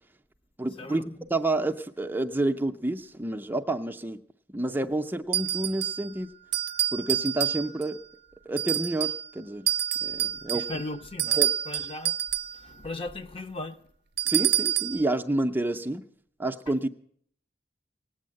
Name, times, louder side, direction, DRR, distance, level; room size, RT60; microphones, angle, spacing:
voice 1, 0.6-4.2 4.5-6.3 6.9-8.0 8.5-9.7 10.0-10.6 11.4-11.5 14.3-16.1 16.4-16.9, right 2 dB, 10° right, 0.5 m, -29 dB
sound 1, 5.3-6.1 6.5-7.9 8.6-9.3 9.7-12.6 14.2-15.0, right 11 dB, 70° right, 0.5 m, -28 dB
voice 2, 10.5-12.2 12.5-13.8, left 2 dB, 30° left, 0.7 m, -37 dB
18.0 x 8.5 x 7.6 m
head